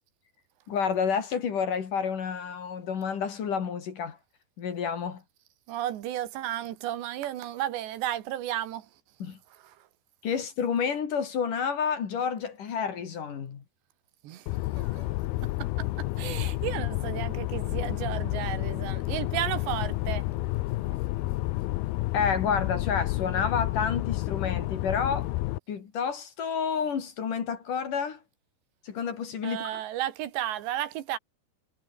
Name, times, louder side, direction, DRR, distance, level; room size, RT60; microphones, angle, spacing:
voice 1, 0.7-4.2 4.6-5.2 9.2-9.4 10.2-13.6 22.1-25.3 25.7-28.2 28.8-29.8, left 6 dB, 50° left, 3.9 m, -29 dB
voice 2, 5.7-8.9 14.2-14.5 14.8-15.1 15.4-20.3 29.4-31.2, right 12 dB, 75° right, 3.8 m, -33 dB
sound 1, 14.5-25.6, left 18 dB, 80° left, 2.3 m, -30 dB
omnidirectional pair, 5.1 m